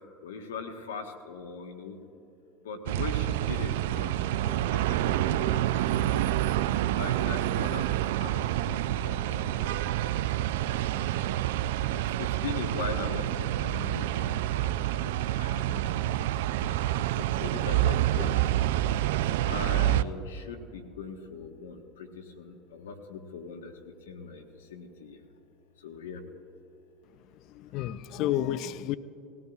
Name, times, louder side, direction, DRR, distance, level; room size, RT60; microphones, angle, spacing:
voice 1, 0.2-2.0 2.6-6.3 7.0-7.9 8.2-10.4 10.7-11.2 12.2-18.5 19.5-25.2 25.8-26.2, left 5 dB, 85° left, 5 dB, 1.2 m, -40 dB
sound 1, 2.9-20.0, right 13 dB, 75° right, 0.3 m, -28 dB
voice 2, 27.5-29.0, left 12 dB, 60° left, 15 dB, 0.4 m, -30 dB
19.0 x 15.5 x 2.4 m, 2.9 s
hypercardioid pair, 80°, 0 cm